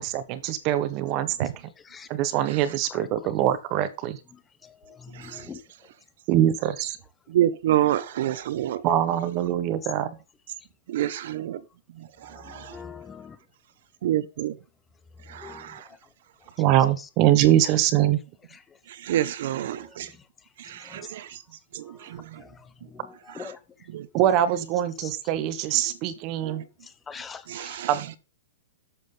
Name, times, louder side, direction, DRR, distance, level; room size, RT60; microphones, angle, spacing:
voice 1, 0.0-1.5 2.1-4.2 6.3-7.0 8.8-10.1 16.6-18.2 24.1-26.6 27.9-28.2, right 12 dB, 30° right, 1.1 m, -23 dB
voice 2, 4.9-5.6 12.5-13.4 15.4-15.6 20.9-21.0 22.4-22.5 23.4-23.6 27.1-27.8, left 6 dB, 10° left, 0.8 m, -42 dB
voice 3, 7.3-8.8 10.9-11.6 12.0-12.8 14.0-14.6 15.3-15.8 18.9-20.1 20.6-21.4 21.7-22.4 23.4-23.5 23.9-24.1 26.4-26.6 27.5-27.9, right 12 dB, 55° right, 0.9 m, -28 dB
12.0 x 7.4 x 3.9 m
hypercardioid pair, 160°, 0 cm